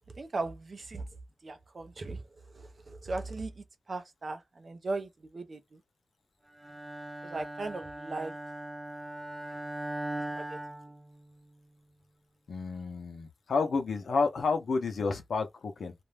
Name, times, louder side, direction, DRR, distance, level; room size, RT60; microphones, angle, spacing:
voice 1, 0.1-1.1 1.4-2.2 2.5-5.8 7.2-8.3 10.3-10.6, right 3 dB, 45° right, 0.5 m, -38 dB
Bowed string instrument, 6.6-11.6, right 1 dB, 10° right, 0.7 m, -40 dB
voice 2, 12.5-15.9, left 4 dB, 80° left, 0.7 m, -30 dB
2.5 x 2.2 x 3.2 m
wide cardioid pair, 140°, 0 cm